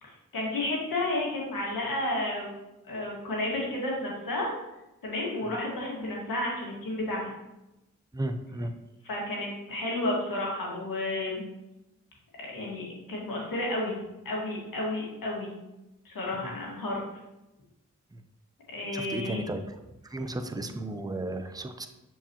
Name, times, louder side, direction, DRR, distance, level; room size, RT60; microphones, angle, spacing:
voice 1, 0.0-2.5 2.9-4.6 5.0-7.3 9.0-11.4 12.4-14.0 14.3-15.5 16.1-17.0 18.7-19.4, left 1 dB, 75° left, -3 dB, 1.9 m, -32 dB
voice 2, 8.1-8.7 16.4-16.5 18.1-18.2 18.9-19.6 20.1-21.9, right 1 dB, 10° right, 7 dB, 0.6 m, -34 dB
6.8 x 4.6 x 3.0 m, 0.95 s
cardioid pair, 45°, 34 cm